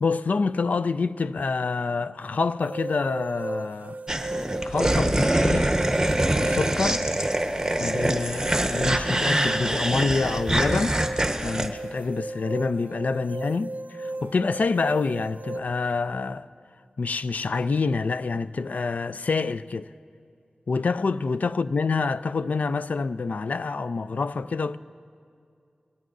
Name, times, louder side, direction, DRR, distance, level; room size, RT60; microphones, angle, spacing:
voice 1, 0.0-4.0 4.6-5.7 6.4-7.0 7.8-11.0 11.4-16.5 17.0-19.9 20.7-24.8, left 4 dB, 75° left, 0.3 m, -27 dB
sound 1, 2.6-15.6, right 2 dB, 75° right, 0.4 m, -36 dB
sound 2, 4.1-11.7, right 1 dB, 20° right, 1.1 m, -24 dB
21.5 x 17.0 x 2.6 m
cardioid pair, 45°, 3 cm